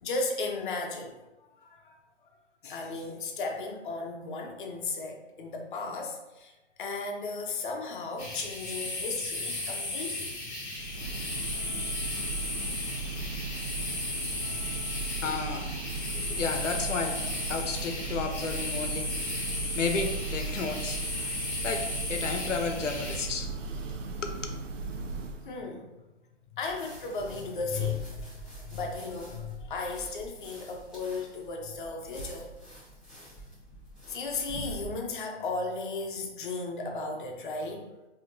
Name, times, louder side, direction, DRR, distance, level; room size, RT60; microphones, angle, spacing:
voice 1, 0.0-1.1 1.6-1.9 2.6-6.5 6.8-12.3 12.6-13.3 14.4-15.1 21.3-21.4 25.4-25.9 26.5-32.5 34.1-37.9, left 3 dB, 45° left, 2 dB, 0.7 m, -36 dB
sound 1, 8.2-23.3, left 2 dB, 25° left, 1.0 m, -35 dB
Church bell, 10.7-25.6, right 3 dB, 85° right, 0.6 m, -37 dB
voice 2, 15.2-23.6 24.2-24.3, left 4 dB, 80° left, 5 dB, 0.7 m, -33 dB
sound 2, 26.6-34.9, right 1 dB, ahead, 1.2 m, -46 dB
4.2 x 2.8 x 2.6 m, 1.0 s
hypercardioid pair, 140°, 36 cm